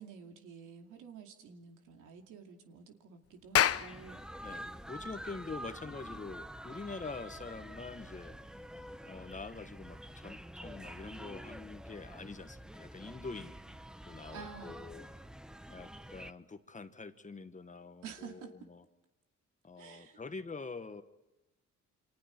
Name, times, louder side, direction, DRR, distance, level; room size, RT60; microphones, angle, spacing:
voice 1, 0.0-4.2 14.3-14.8 18.0-18.5 19.8-20.2, right 6 dB, 90° right, 3 dB, 2.6 m, -50 dB
Clapping, 3.3-8.2, left 10 dB, 50° left, 0.7 m, -34 dB
sound 1, 3.7-16.3, equal, ahead, 0.8 m, -47 dB
voice 2, 4.4-8.4 9.1-13.5 14.1-15.1 15.7-18.8 19.6-21.0, left 4 dB, 25° left, 9 dB, 1.4 m, -45 dB
29.5 x 25.0 x 4.6 m, 0.97 s
cardioid pair, 90°, 30 cm